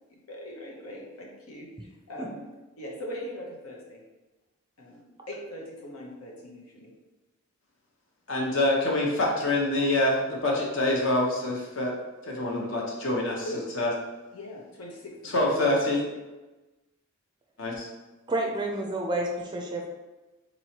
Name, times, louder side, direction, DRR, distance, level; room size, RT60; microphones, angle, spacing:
voice 1, 0.1-2.5 2.8-4.0 4.8-6.9 13.4-13.7 14.3-15.9, equal, 85° left, -2 dB, 0.9 m, -41 dB
voice 2, 8.3-11.9 12.3-13.5 13.8-13.9 15.2-16.0 17.6-17.9, left 1 dB, 60° left, -1 dB, 0.8 m, -25 dB
voice 3, 18.3-19.9, right 1 dB, 20° right, 1 dB, 0.4 m, -29 dB
4.0 x 3.1 x 2.8 m, 1.1 s
head